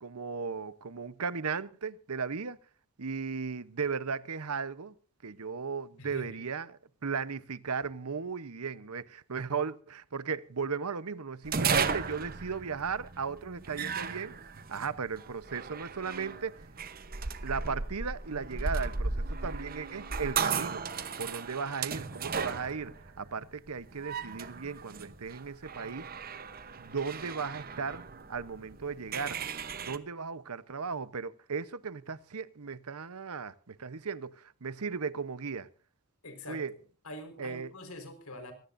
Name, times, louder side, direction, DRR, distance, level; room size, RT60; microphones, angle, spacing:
voice 1, 0.0-2.6 3.0-4.9 5.2-14.4 14.7-16.7 17.4-20.8 21.2-26.1 26.8-29.4 29.8-35.7 36.5-36.7 37.4-37.7, right 5 dB, 90° right, 0.9 m, -36 dB
voice 2, 6.0-6.4 36.2-36.6 37.0-38.5, left 1 dB, 80° left, 4.6 m, -44 dB
sound 1, 11.4-30.0, right 5 dB, 40° right, 0.9 m, -36 dB
24.5 x 17.0 x 2.6 m
head